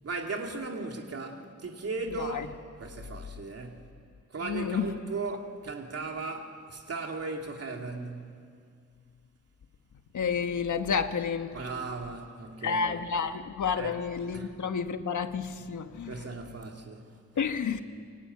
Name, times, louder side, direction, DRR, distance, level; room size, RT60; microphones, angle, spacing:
voice 1, 0.0-3.9 4.3-8.4 11.5-13.0 13.8-14.0 14.3-14.5 16.1-17.2, right 3 dB, 55° right, 2.9 m, -37 dB
voice 2, 2.1-2.5 4.4-4.9 10.1-11.6 12.6-16.1 17.4-17.8, left 6 dB, 85° left, 1.5 m, -30 dB
24.0 x 24.0 x 9.6 m
wide cardioid pair, 150°, 29 cm